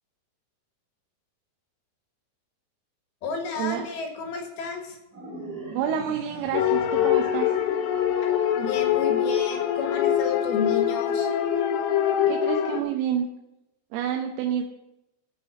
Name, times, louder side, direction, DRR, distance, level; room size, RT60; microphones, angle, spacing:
voice 1, 3.2-5.0 8.6-11.3, left 5 dB, 60° left, 3 dB, 3.1 m, -32 dB
sound 1, 5.1-9.6, right 1 dB, 25° right, 2.7 m, -41 dB
voice 2, 5.8-7.5 12.3-13.3 13.9-14.6, right 9 dB, 85° right, 3 dB, 3.5 m, -28 dB
sound 2, 6.5-12.8, left 10 dB, 80° left, 3.6 m, -24 dB
17.5 x 5.8 x 7.4 m, 0.91 s
omnidirectional pair, 5.8 m